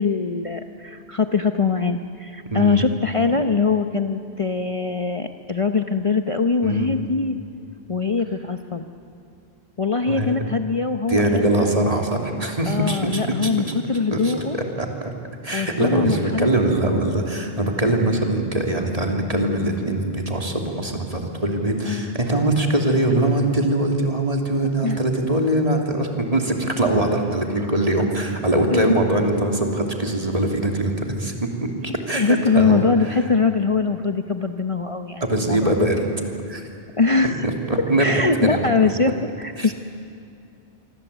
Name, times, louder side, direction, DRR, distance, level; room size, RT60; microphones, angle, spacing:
voice 1, 0.0-7.3 7.9-8.9 9.8-11.7 12.7-14.6 15.5-16.5 21.8-22.1 24.8-25.0 28.7-28.9 32.1-35.7 37.0-37.5 38.0-39.7, left 4 dB, 35° left, 7 dB, 0.8 m, -22 dB
voice 2, 2.5-2.8 6.6-7.0 10.1-10.4 11.1-13.7 14.1-15.1 15.4-33.2 35.2-36.0 36.5-36.7 37.4-38.7 39.6-39.7, right 1 dB, 35° right, 2 dB, 2.9 m, -22 dB
26.0 x 24.5 x 8.2 m, 2.5 s
omnidirectional pair, 1.1 m